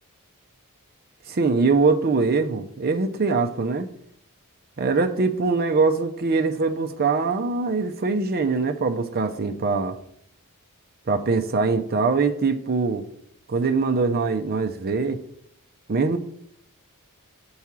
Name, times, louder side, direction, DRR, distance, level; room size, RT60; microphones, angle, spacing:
voice 1, 1.3-3.9 4.8-10.0 11.1-13.1 13.5-15.2 15.9-16.2, right 4 dB, 45° right, 6 dB, 0.6 m, -22 dB
6.9 x 4.7 x 6.0 m, 0.69 s
head